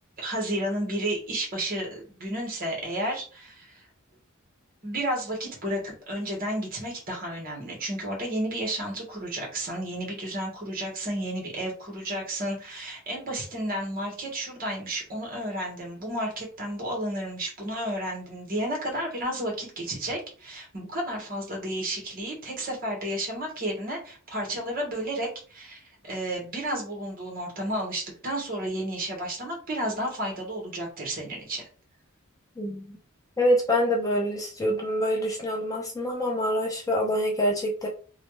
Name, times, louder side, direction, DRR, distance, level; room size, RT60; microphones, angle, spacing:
voice 1, 0.2-3.9 4.8-31.7, right 1 dB, 45° right, 0 dB, 1.3 m, -32 dB
voice 2, 32.6-33.0 33.4-37.9, equal, 15° left, -1 dB, 0.5 m, -26 dB
3.2 x 2.3 x 3.0 m, 0.40 s
head